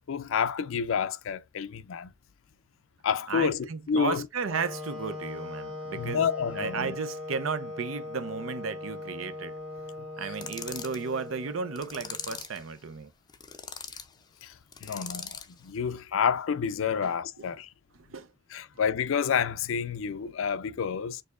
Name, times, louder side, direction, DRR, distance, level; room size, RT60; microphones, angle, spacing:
voice 1, 0.1-2.1 3.0-4.3 5.9-7.0 14.4-14.5 14.8-17.7 18.5-21.2, left 7 dB, 80° left, 0.4 m, -29 dB
voice 2, 3.3-6.2 6.5-9.6 10.2-13.1 17.0-17.5 17.9-18.3, right 5 dB, 80° right, 0.6 m, -34 dB
Wind instrument woodwind instrument, 4.5-12.4, left 2 dB, 25° right, 1.5 m, -40 dB
sound 1, 10.3-11.0 11.8-12.6 13.3-14.1 14.7-15.5, left 6 dB, 20° left, 0.4 m, -40 dB
6.4 x 2.7 x 2.4 m
head